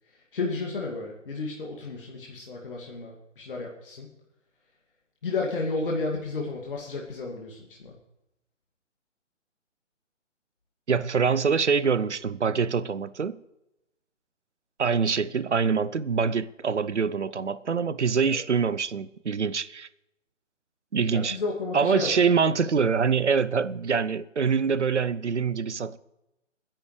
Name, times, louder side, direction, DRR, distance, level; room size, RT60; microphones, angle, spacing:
voice 1, 0.1-4.1 5.2-7.9 18.3-18.4 21.1-22.1, left 3 dB, 45° left, 2.3 m, -32 dB
voice 2, 10.9-13.4 14.8-19.9 20.9-21.4 21.7-26.0, right 5 dB, 65° right, 0.8 m, -25 dB
29.5 x 10.5 x 3.3 m
figure-of-eight pair, 145°, 37 cm